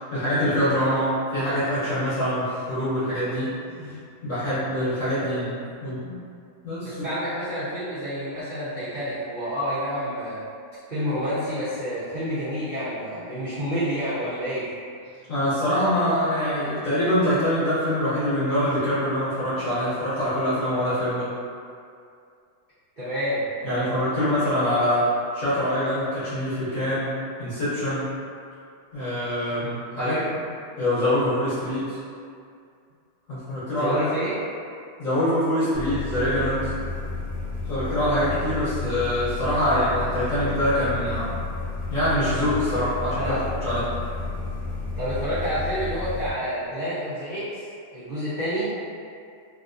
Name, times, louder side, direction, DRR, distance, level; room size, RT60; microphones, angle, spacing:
voice 1, 0.0-3.5 4.2-6.2 6.6-7.0 15.3-21.3 23.6-27.1 27.4-28.0 28.9-30.4 30.8-32.0 33.3-33.9 35.0-36.7 37.7-41.4 41.9-43.3 43.6-43.8, equal, 55° left, -12 dB, 1.0 m, -24 dB
voice 2, 6.8-10.4 10.9-14.6 23.0-23.9 24.2-24.3 29.9-30.2 33.7-34.4 43.1-43.4 45.0-47.6 47.9-48.7, equal, 45° right, -16 dB, 0.6 m, -29 dB
sound 1, 35.7-46.3, left 3 dB, 70° left, 1.3 m, -32 dB
3.2 x 2.6 x 2.5 m, 2.3 s
omnidirectional pair, 2.2 m